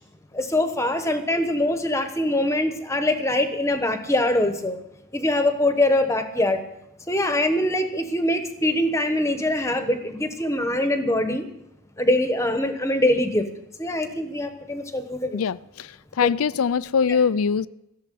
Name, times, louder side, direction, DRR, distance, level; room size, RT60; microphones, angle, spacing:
voice 1, 0.3-4.8 5.1-6.6 7.1-11.4 12.0-13.4 13.8-15.4 16.2-16.3 17.1-17.2, left 1 dB, 15° left, 1.1 m, -23 dB
voice 2, 15.3-15.9 16.2-17.7, left 6 dB, 75° left, 0.4 m, -22 dB
15.5 x 7.3 x 9.4 m
head